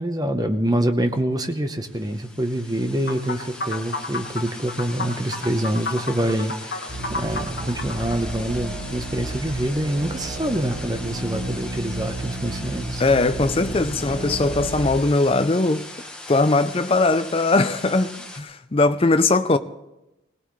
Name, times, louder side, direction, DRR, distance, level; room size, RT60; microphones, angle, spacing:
voice 1, 0.0-13.0, right 1 dB, 20° right, 0.8 m, -26 dB
sound 1, 1.8-18.4, left 2 dB, 5° left, 1.3 m, -40 dB
sound 2, 3.1-8.2, left 2 dB, 55° left, 1.1 m, -32 dB
sound 3, 6.9-14.9, right 2 dB, 50° right, 5.5 m, -32 dB
voice 2, 13.0-15.9 16.3-19.6, left 3 dB, 30° left, 0.5 m, -20 dB
21.5 x 18.0 x 3.2 m
head